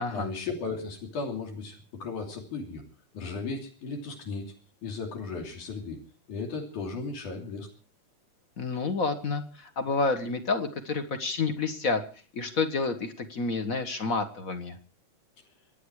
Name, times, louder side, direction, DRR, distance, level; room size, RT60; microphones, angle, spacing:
voice 1, 0.1-2.8 3.1-4.5 4.8-6.0 6.3-7.7, left 4 dB, 70° left, 1 dB, 4.5 m, -35 dB
voice 2, 8.6-12.0 12.3-14.8, left 4 dB, 45° left, 8 dB, 1.1 m, -29 dB
26.0 x 9.8 x 4.8 m, 0.40 s
omnidirectional pair, 3.7 m